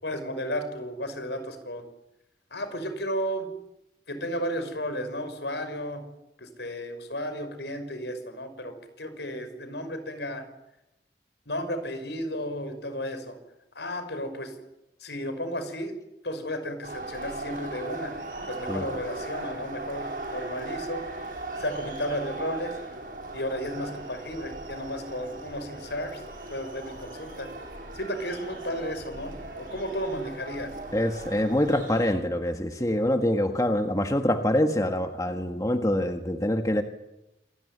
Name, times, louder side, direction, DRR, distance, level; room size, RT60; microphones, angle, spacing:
voice 1, 0.0-1.8 2.5-3.5 4.1-6.0 6.4-10.4 11.5-13.4 13.7-14.5 15.0-15.9 16.2-18.1 18.5-20.1 20.3-21.0 21.6-22.7 23.3-26.2 26.5-27.5 27.9-30.7, equal, 80° left, 10 dB, 5.9 m, -33 dB
sound 1, 16.8-32.1, right 2 dB, 50° right, 7.9 m, -38 dB
voice 2, 30.9-36.8, left 1 dB, 20° left, 6 dB, 1.6 m, -25 dB
27.5 x 20.0 x 9.9 m, 0.89 s
head